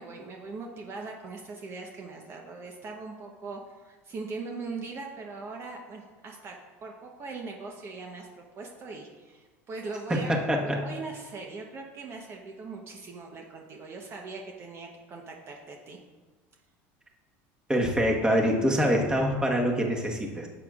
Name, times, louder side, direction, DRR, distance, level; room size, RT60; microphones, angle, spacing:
voice 1, 0.0-6.6 6.8-10.3 10.6-16.0, right 3 dB, 40° right, 1 dB, 1.0 m, -40 dB
voice 2, 10.1-10.9 17.7-20.5, equal, 10° right, 0 dB, 1.4 m, -25 dB
11.0 x 7.9 x 2.5 m, 1.4 s
supercardioid pair, 105°, 7 cm